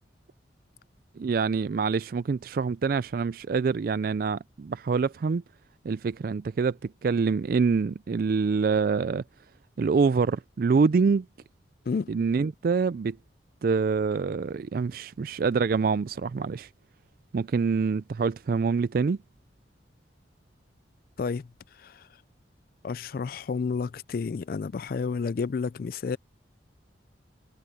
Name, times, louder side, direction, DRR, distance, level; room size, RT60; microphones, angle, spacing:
voice 1, 1.2-5.4 5.8-9.2 9.8-11.3 12.1-13.2 13.6-16.7 17.3-19.2, right 5 dB, 50° right, 0.3 m, -26 dB
voice 2, 21.2-22.1 22.8-26.2, left 5 dB, 50° left, 0.3 m, -31 dB
head